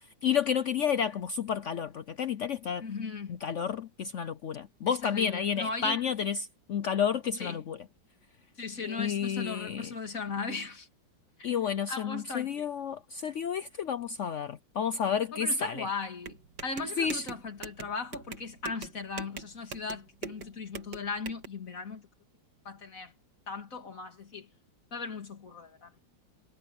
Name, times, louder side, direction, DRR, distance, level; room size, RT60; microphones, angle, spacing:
voice 1, 0.2-2.8 3.3-7.8 8.8-9.9 11.4-15.9 17.0-17.2, left 7 dB, 75° left, 0.6 m, -31 dB
voice 2, 2.8-3.4 4.9-6.0 7.4-7.6 8.6-10.9 11.9-12.7 15.3-22.1 22.6-23.1 23.5-24.5 24.9-25.9, left 4 dB, 45° left, 3.1 m, -38 dB
sound 1, 16.2-21.5, right 5 dB, 60° right, 2.4 m, -43 dB
omnidirectional pair, 2.0 m